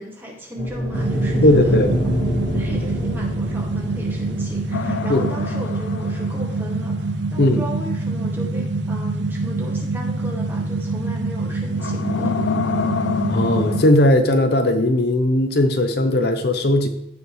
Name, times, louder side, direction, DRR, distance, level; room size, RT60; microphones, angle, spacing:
voice 1, 0.0-1.8 2.5-12.3 13.0-13.6, equal, 10° right, -2 dB, 2.0 m, -36 dB
sound 1, 0.6-8.8, equal, 35° left, 1.7 m, -27 dB
sound 2, 0.9-13.8, right 3 dB, 75° right, 0.5 m, -25 dB
voice 2, 1.4-1.9 5.1-5.3 7.4-7.6 13.3-16.9, left 1 dB, 55° left, 7 dB, 0.7 m, -17 dB
sound 3, 4.7-7.1 11.8-13.9, left 6 dB, 90° left, 0.5 m, -27 dB
15.5 x 5.3 x 3.2 m, 0.81 s
head